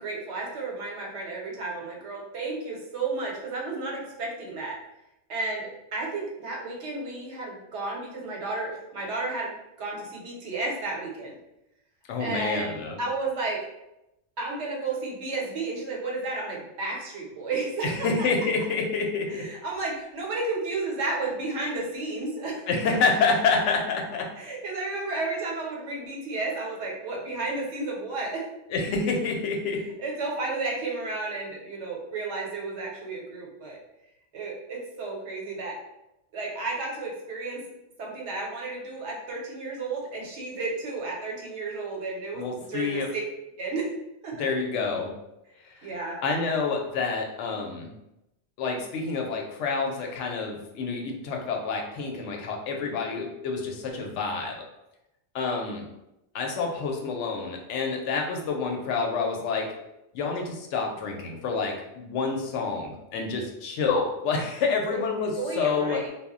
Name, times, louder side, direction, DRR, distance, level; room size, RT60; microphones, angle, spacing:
voice 1, 0.0-4.7 5.3-11.4 12.2-13.6 14.4-17.9 18.2-18.3 19.3-22.6 24.4-28.4 30.0-33.8 34.3-35.7 36.3-37.6 38.0-43.3 43.6-43.9 44.2-44.4 45.8-46.2 64.9-65.0 65.4-66.1, right 3 dB, 75° right, -2 dB, 1.0 m, -32 dB
voice 2, 12.1-13.0 17.8-19.5 22.7-24.3 28.7-29.9 42.3-43.1 44.4-45.1 45.6-45.9 46.2-47.9 48.6-54.6 55.3-55.9 56.3-59.7 60.1-66.0, left 4 dB, 85° left, 2 dB, 0.9 m, -28 dB
2.2 x 2.1 x 3.6 m, 0.89 s
omnidirectional pair, 1.2 m